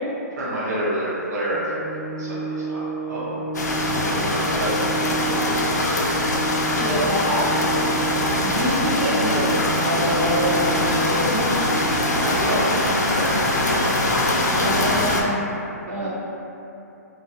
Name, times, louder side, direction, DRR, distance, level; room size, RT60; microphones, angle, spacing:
voice 1, 0.4-3.4 3.9-6.0 6.8-7.3 12.2-15.0 16.0-16.1, right 1 dB, 75° right, -9 dB, 0.7 m, -29 dB
Organ, 1.4-12.4, right 3 dB, 25° right, 0.4 m, -31 dB
sound 1, 3.5-15.2, left 1 dB, 85° left, 0.4 m, -22 dB
voice 2, 6.7-7.4 8.4-9.6 9.8-11.5 14.5-15.4 15.9-16.1, equal, 40° right, -9 dB, 0.8 m, -25 dB
2.2 x 2.2 x 2.7 m, 2.9 s
hypercardioid pair, 135°, 9 cm